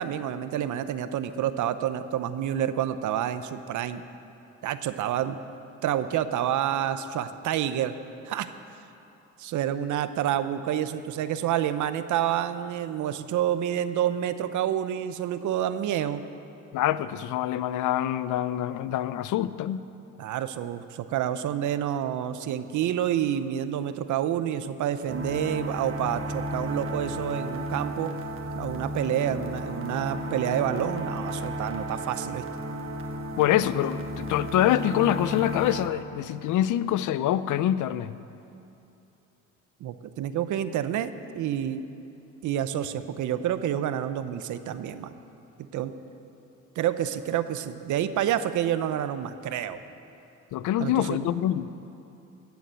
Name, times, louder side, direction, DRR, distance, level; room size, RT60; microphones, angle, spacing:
voice 1, 0.0-4.0 4.6-5.4 5.8-8.0 8.3-8.5 9.4-16.2 20.2-28.1 28.5-32.4 39.8-41.9 42.4-45.1 45.7-45.9 46.8-49.8 50.8-51.3, right 10 dB, 75° right, 11 dB, 0.7 m, -28 dB
voice 2, 16.7-19.8 33.4-38.2 50.5-51.7, left 12 dB, 80° left, 15 dB, 0.5 m, -25 dB
sound 1, 25.1-35.9, equal, 45° right, 1.4 m, -34 dB
17.0 x 7.1 x 7.6 m, 2.9 s
cardioid pair, 90°, 30 cm